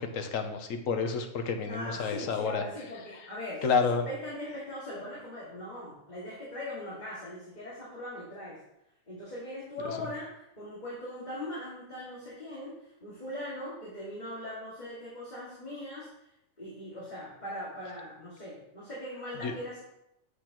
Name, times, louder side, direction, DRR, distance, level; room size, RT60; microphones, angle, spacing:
voice 1, 0.0-2.6 3.6-4.1 19.4-19.5, left 5 dB, 85° left, 6 dB, 1.2 m, -29 dB
voice 2, 1.6-8.6 9.1-16.1 16.6-19.8, left 1 dB, 35° left, -8 dB, 2.3 m, -40 dB
8.2 x 7.6 x 3.0 m, 0.82 s
omnidirectional pair, 1.3 m